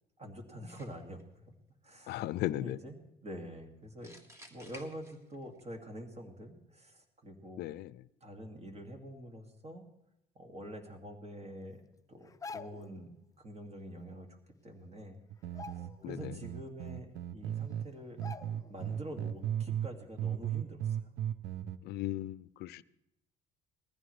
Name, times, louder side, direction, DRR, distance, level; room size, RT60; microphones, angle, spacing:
voice 1, 0.2-1.5 1.8-2.2 2.5-3.0 3.2-4.1 4.5-7.6 8.2-9.8 10.4-11.8 12.1-14.4 14.6-15.2 15.5-18.2 18.7-21.1, equal, 40° right, 2.2 m, -46 dB
sound 1, 0.7-1.2 4.0-5.6, left 1 dB, 15° right, 1.7 m, -54 dB
voice 2, 2.1-2.8 7.6-7.9 16.0-16.3 21.8-22.8, left 15 dB, 75° left, 0.4 m, -36 dB
sound 2, 12.2-13.0 14.4-14.5 14.8-15.1 15.5-16.3 16.7-16.8 17.6-17.7 18.2-18.8 19.2-19.4, left 4 dB, 20° left, 0.5 m, -47 dB
sound 3, 15.3-17.9 18.2-19.9 20.2-21.8, right 10 dB, 75° right, 0.7 m, -36 dB
19.5 x 15.0 x 3.3 m
cardioid pair, 110°, 17 cm